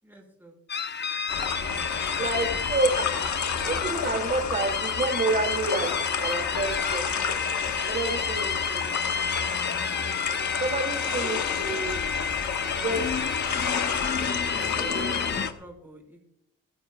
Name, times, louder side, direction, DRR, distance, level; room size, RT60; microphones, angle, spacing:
voice 1, 0.0-0.6 12.7-13.0 14.1-16.3, right 1 dB, 5° right, 0 dB, 5.6 m, -45 dB
sound 1, 0.7-15.5, left 5 dB, 30° left, 0.8 m, -31 dB
sound 2, 1.3-15.5, left 6 dB, 60° left, 1.5 m, -31 dB
voice 2, 2.2-3.1 3.6-7.4 7.9-8.8 10.6-12.0 12.8-13.0 14.9-15.1, right 2 dB, 30° right, 1 dB, 2.6 m, -29 dB
20.5 x 13.0 x 2.4 m, 0.76 s
cardioid pair, 95°, 32 cm